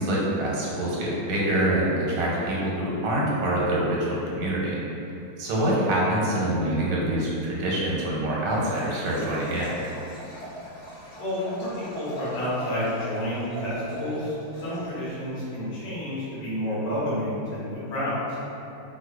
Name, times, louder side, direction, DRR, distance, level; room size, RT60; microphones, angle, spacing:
voice 1, 0.0-4.8 5.4-9.8, right 1 dB, 85° right, -5 dB, 1.6 m, -25 dB
voice 2, 5.4-5.8 11.2-18.4, left 1 dB, 85° left, -10 dB, 2.0 m, -30 dB
Liquid, 8.4-15.3, equal, 55° left, 1.6 m, -40 dB
4.8 x 2.1 x 2.3 m, 2.8 s
omnidirectional pair, 2.3 m